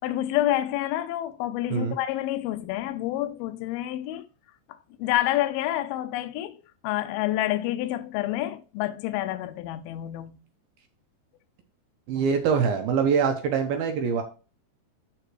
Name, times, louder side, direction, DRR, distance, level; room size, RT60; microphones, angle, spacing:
voice 1, 0.0-4.3 5.0-6.6 6.8-10.4, left 14 dB, 85° left, 2.2 m, -28 dB
voice 2, 12.1-14.2, right 6 dB, 75° right, 2.4 m, -24 dB
11.5 x 4.9 x 3.1 m
omnidirectional pair, 5.1 m